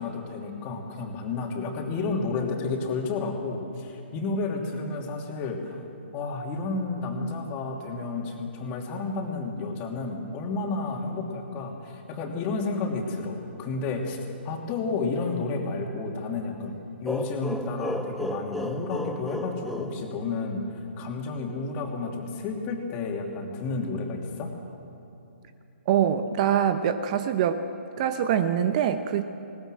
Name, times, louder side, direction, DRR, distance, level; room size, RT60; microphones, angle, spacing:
voice 1, 0.0-5.8 6.1-14.2 14.4-24.5, left 3 dB, 25° left, 1 dB, 2.8 m, -31 dB
sound 1, 17.1-20.8, equal, ahead, 0.5 m, -34 dB
voice 2, 25.9-27.6 28.0-29.2, right 9 dB, 35° right, 10 dB, 0.9 m, -24 dB
20.5 x 19.5 x 7.8 m, 2.8 s
hypercardioid pair, 140°, 7 cm